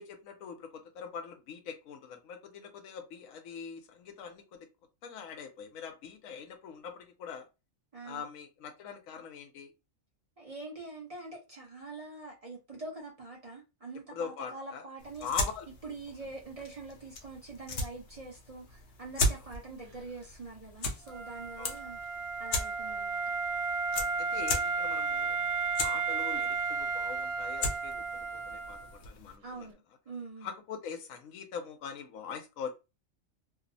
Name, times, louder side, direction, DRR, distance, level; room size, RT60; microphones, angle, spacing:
voice 1, 0.0-4.7 5.0-7.5 8.0-9.7 14.1-14.8 15.2-15.7 21.6-21.7 23.9-25.5 25.8-29.7 30.4-32.7, left 6 dB, 85° left, 1.0 m, -43 dB
voice 2, 7.9-8.2 10.4-15.3 15.8-22.0 22.4-23.3 29.4-30.5, right 3 dB, 35° right, 0.6 m, -45 dB
sound 1, 15.0-29.4, left 2 dB, 60° left, 0.7 m, -38 dB
Wind instrument woodwind instrument, 21.1-28.9, right 5 dB, 85° right, 0.4 m, -33 dB
2.8 x 2.0 x 2.6 m
omnidirectional pair, 1.4 m